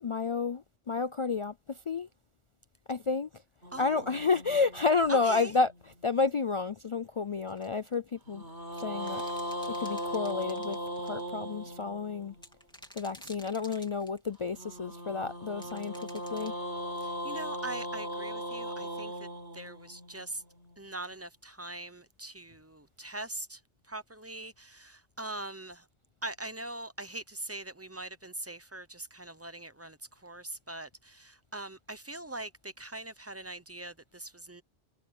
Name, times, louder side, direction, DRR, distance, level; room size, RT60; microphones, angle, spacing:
voice 1, 0.0-2.1 2.9-3.3 3.8-8.4 8.8-9.2 9.8-12.3 13.0-15.9 16.3-16.5, left 4 dB, 55° left, 0.3 m, -30 dB
sound 1, 3.6-6.0 8.3-12.4 14.6-20.8, equal, 80° right, 4.8 m, -38 dB
voice 2, 3.7-4.1 5.1-5.5 17.0-19.3 19.5-20.4 20.8-23.6 23.9-25.8 26.2-30.0 30.2-34.6, right 2 dB, 15° right, 0.7 m, -41 dB
sound 2, 7.5-7.9 8.7-11.2 12.4-14.4 15.6-16.5, equal, 5° left, 2.8 m, -52 dB
omnidirectional pair, 1.1 m